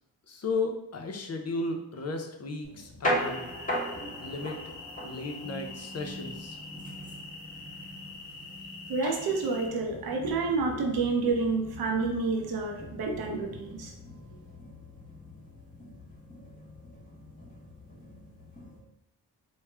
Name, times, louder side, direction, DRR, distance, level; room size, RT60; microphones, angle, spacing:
voice 1, 0.3-3.5 4.2-4.6 5.0-6.6, left 3 dB, 35° left, 4 dB, 0.7 m, -34 dB
sound 1, 2.6-18.8, equal, 20° left, 1.1 m, -39 dB
sound 2, 3.1-9.7, left 3 dB, 80° left, 0.7 m, -45 dB
voice 2, 8.9-13.9, right 4 dB, 60° right, 1 dB, 0.8 m, -29 dB
3.1 x 2.1 x 3.4 m, 0.88 s
supercardioid pair, 45°, 42 cm